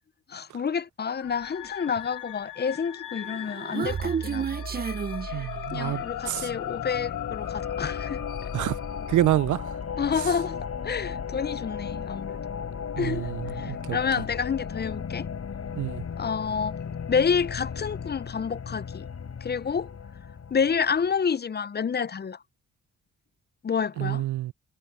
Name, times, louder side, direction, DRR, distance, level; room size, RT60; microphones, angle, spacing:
voice 1, 0.3-4.5 5.7-8.2 10.0-12.4 13.0-15.3 16.2-16.8 17.1-19.1 19.4-19.9 20.5-22.4 23.6-24.2, left 6 dB, 35° left, 0.6 m, -29 dB
sound 1, 1.2-9.3, left 12 dB, 85° left, 2.8 m, -38 dB
Human voice, 3.2-6.2, right 6 dB, 30° right, 0.6 m, -32 dB
voice 2, 5.3-6.5 8.5-8.8 9.1-9.7 13.0-14.0 15.8-16.0 24.0-24.5, right 14 dB, 75° right, 0.5 m, -27 dB
sound 2, 5.6-21.0, left 7 dB, 60° left, 3.5 m, -36 dB
cardioid pair, 60°, 30 cm